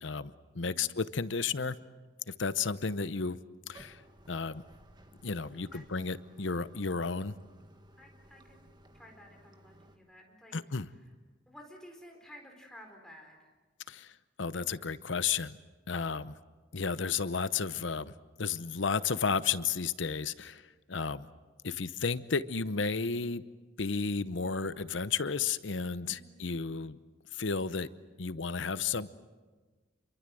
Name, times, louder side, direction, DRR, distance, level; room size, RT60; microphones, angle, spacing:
voice 1, 0.0-1.8 2.3-3.4 3.7-4.0 4.3-4.6 5.2-7.3 10.5-10.9 13.9-15.6 15.9-16.3 16.7-18.1 18.4-21.3 21.6-23.4 23.8-27.0 27.3-27.9 28.2-29.1, left 5 dB, 75° left, 15 dB, 0.9 m, -33 dB
voice 2, 0.6-1.0 5.5-5.8 8.0-8.6 8.9-10.6 10.9-11.0 11.5-13.5 26.0-26.4, left 1 dB, 5° left, 1 dB, 4.4 m, -53 dB
Bathtub (filling or washing), 3.7-10.0, right 1 dB, 25° right, 1.7 m, -58 dB
27.5 x 23.5 x 7.8 m, 1.3 s
head